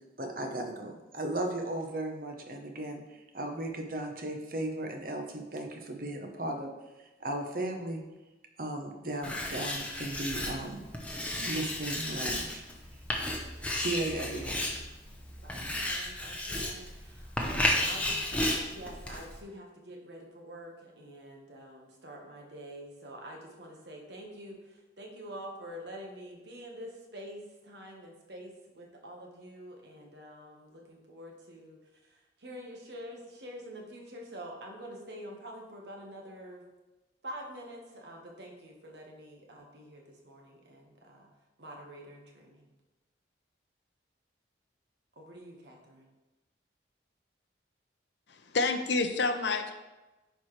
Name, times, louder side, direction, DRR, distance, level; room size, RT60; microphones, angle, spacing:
voice 1, 0.2-6.7 7.0-8.0 8.6-10.8 11.4-12.6 13.7-14.6, right 1 dB, 50° right, 3 dB, 0.9 m, -36 dB
Writing, 9.2-19.4, left 1 dB, 5° left, 0.8 m, -33 dB
voice 2, 15.4-31.8 32.1-36.6 37.2-41.3 41.6-42.7 45.2-46.1, equal, 70° right, 0 dB, 1.4 m, -46 dB
voice 3, 48.3-49.8, left 3 dB, 75° left, 8 dB, 0.6 m, -29 dB
10.5 x 4.6 x 3.2 m, 1.1 s
head